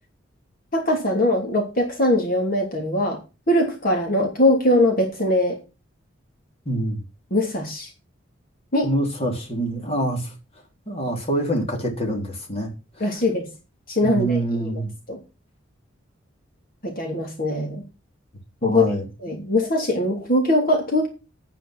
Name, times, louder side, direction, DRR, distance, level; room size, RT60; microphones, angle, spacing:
voice 1, 0.7-3.2 3.5-5.6 7.3-7.9 8.7-8.9 13.0-13.5 13.9-14.7 15.1-15.2 16.8-17.8 18.6-18.8 19.2-21.1, left 1 dB, 45° left, 1 dB, 3.0 m, -21 dB
voice 2, 6.7-7.0 8.8-10.3 10.9-12.7 13.0-13.1 14.0-14.9 18.6-19.1, right 1 dB, 30° left, 0 dB, 3.6 m, -25 dB
9.7 x 9.1 x 6.1 m, 0.30 s
head